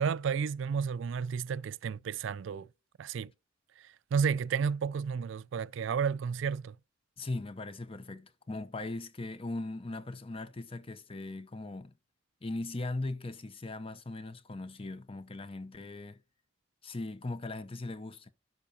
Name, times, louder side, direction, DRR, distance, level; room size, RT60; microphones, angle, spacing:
voice 1, 0.0-2.7 3.0-3.3 4.1-6.7, right 6 dB, 65° right, 0.3 m, -31 dB
voice 2, 7.2-11.9 12.4-16.2 16.8-18.3, left 2 dB, 25° left, 0.6 m, -39 dB
12.0 x 5.5 x 2.8 m
head